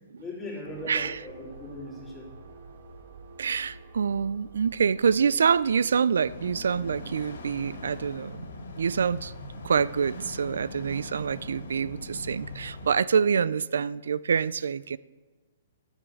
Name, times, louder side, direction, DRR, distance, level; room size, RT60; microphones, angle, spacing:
voice 1, 0.2-2.3, left 1 dB, 10° left, 2.6 m, -39 dB
sound 1, 0.6-10.1, right 3 dB, 75° right, 3.0 m, -50 dB
voice 2, 0.9-1.2 3.4-8.5 8.8-9.3 9.6-15.0, right 6 dB, 90° right, 0.3 m, -26 dB
sound 2, 6.2-12.9, left 2 dB, 85° left, 2.2 m, -41 dB
10.0 x 7.2 x 7.7 m
hypercardioid pair, 170°, 0 cm